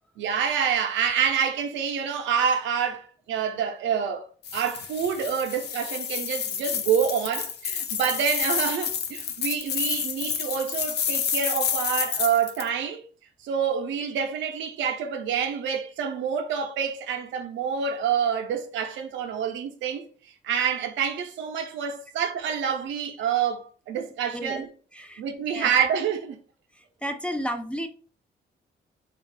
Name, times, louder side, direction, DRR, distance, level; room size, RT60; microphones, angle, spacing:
voice 1, 0.2-13.0 13.4-20.1 20.4-24.7 25.2-26.4, right 7 dB, 90° right, 0.6 m, -27 dB
sound 1, 4.4-12.7, left 8 dB, 60° left, 0.5 m, -29 dB
voice 2, 24.3-24.6 24.9-25.2 25.5-25.7 27.0-27.9, equal, 5° left, 0.4 m, -32 dB
3.5 x 2.4 x 3.2 m
cardioid pair, 100°, 19 cm